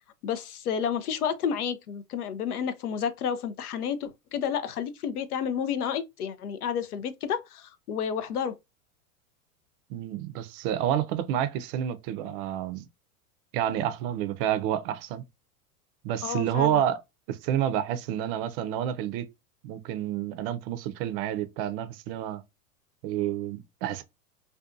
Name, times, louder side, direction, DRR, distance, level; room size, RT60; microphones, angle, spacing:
voice 1, 0.2-8.6 16.2-16.8, left 7 dB, 90° left, 0.5 m, -31 dB
voice 2, 9.9-12.9 13.5-15.2 16.0-17.0 17.3-19.2 19.6-22.4 23.0-24.0, right 10 dB, 40° right, 0.4 m, -29 dB
2.6 x 2.2 x 2.4 m
hypercardioid pair, 105°, 44 cm